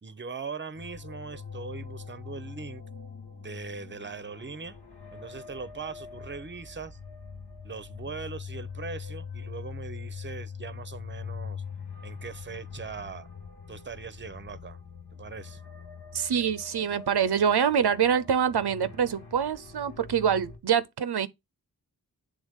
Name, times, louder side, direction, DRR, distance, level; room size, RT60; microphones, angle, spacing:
voice 1, 0.0-2.8 3.3-4.8 5.1-7.0 7.6-11.6 12.0-13.3 13.7-14.8 15.1-15.6, right 5 dB, 30° right, 0.6 m, -40 dB
sound 1, 0.7-20.6, left 6 dB, 90° left, 1.4 m, -43 dB
voice 2, 16.1-21.3, right 8 dB, 90° right, 0.6 m, -25 dB
8.0 x 3.5 x 3.5 m
wide cardioid pair, 40°, 38 cm